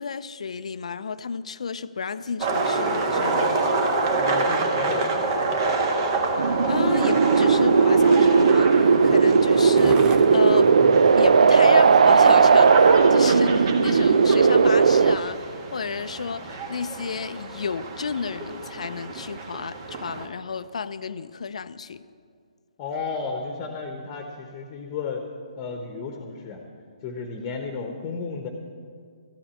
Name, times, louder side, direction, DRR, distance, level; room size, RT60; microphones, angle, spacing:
voice 1, 0.0-3.6 6.7-10.7 11.1-22.0, left 5 dB, 65° left, 14 dB, 0.5 m, -32 dB
sound 1, 2.4-20.3, right 3 dB, 40° right, 1.5 m, -28 dB
voice 2, 4.2-5.3 22.8-25.2 25.6-26.6 27.0-28.5, left 4 dB, 25° left, 3 dB, 1.1 m, -33 dB
Skateboard, 4.8-13.6 14.2-14.3, right 4 dB, 20° right, 0.8 m, -41 dB
sound 2, 6.4-15.2, right 5 dB, 70° right, 0.5 m, -17 dB
13.5 x 8.7 x 8.3 m, 2.2 s
hypercardioid pair, 145°, 4 cm